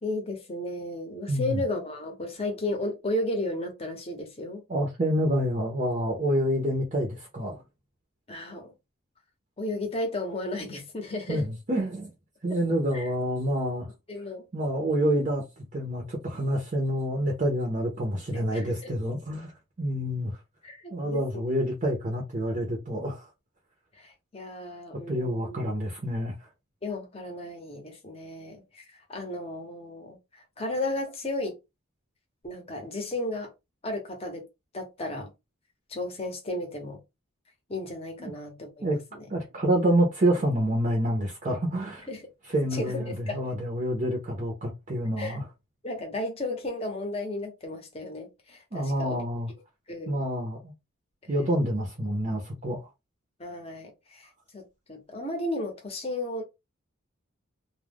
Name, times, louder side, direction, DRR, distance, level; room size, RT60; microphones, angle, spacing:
voice 1, 0.0-4.6 8.3-8.7 9.6-11.4 12.9-13.1 14.1-14.5 18.3-18.9 20.6-21.5 23.9-25.6 26.8-31.6 32.4-33.5 33.8-34.4 34.7-35.3 35.9-37.0 37.7-39.3 42.1-42.2 42.7-43.4 45.2-45.4 45.8-49.2 49.9-50.2 51.2-51.3 53.4-56.4, left 1 dB, 30° left, 0.8 m, -34 dB
voice 2, 1.3-1.6 4.7-7.6 11.3-12.1 12.4-13.9 14.5-19.5 19.8-20.4 20.9-23.3 25.1-26.5 38.2-38.3 38.8-39.0 39.3-42.1 42.5-45.4 48.7-49.5 50.1-50.7 51.3-52.8, equal, 35° right, 0.6 m, -27 dB
2.3 x 2.1 x 3.4 m
head